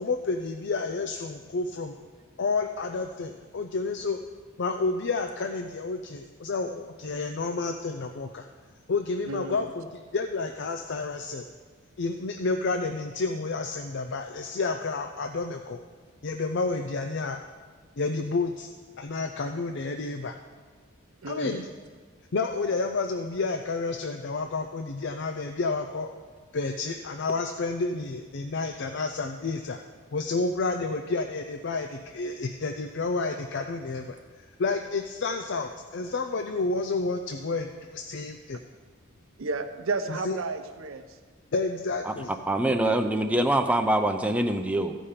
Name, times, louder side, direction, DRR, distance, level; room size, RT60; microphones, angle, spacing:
voice 1, 0.0-1.9 2.4-4.2 4.6-8.5 8.9-11.5 12.0-15.8 16.2-17.4 18.0-18.7 19.0-20.4 21.3-21.7 22.3-26.1 26.5-29.8 30.1-38.6 40.1-40.4 41.5-42.3, left 3 dB, 55° left, 6 dB, 0.5 m, -30 dB
voice 2, 9.3-9.6 21.2-21.6 39.4-41.2 42.8-43.0, right 3 dB, 80° right, 8 dB, 0.8 m, -33 dB
voice 3, 42.5-44.9, right 1 dB, 5° right, 6 dB, 0.6 m, -24 dB
15.0 x 5.1 x 5.6 m, 1.5 s
head